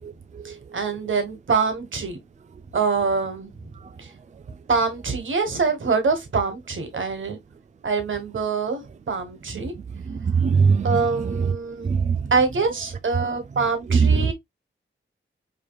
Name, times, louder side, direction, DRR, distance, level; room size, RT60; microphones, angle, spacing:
voice 1, 0.4-2.2 2.7-3.7 4.0-4.1 4.7-7.4 7.8-9.7 10.8-12.0 12.3-14.3, right 4 dB, 75° right, 1.3 m, -25 dB
voice 2, 10.1-10.9 11.8-12.2 14.0-14.3, right 5 dB, 35° right, 0.4 m, -19 dB
5.0 x 3.0 x 2.3 m
wide cardioid pair, 70°, 20 cm